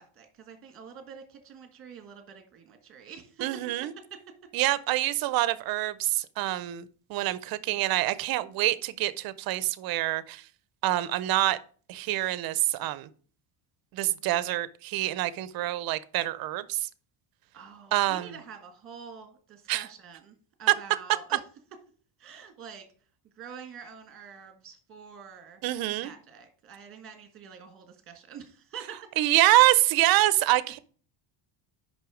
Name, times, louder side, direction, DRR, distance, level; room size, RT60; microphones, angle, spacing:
voice 1, 0.0-3.4 4.1-4.2 17.5-21.4 22.2-22.8 23.4-25.6 26.0-29.0, right 6 dB, 30° right, 1.4 m, -46 dB
voice 2, 3.4-3.9 4.5-10.4 10.8-11.6 11.9-13.1 13.9-16.9 17.9-18.3 19.7-19.9 25.6-26.1 29.2-30.8, right 16 dB, 50° right, 0.5 m, -26 dB
6.1 x 5.5 x 4.9 m
cardioid pair, 170°, 46 cm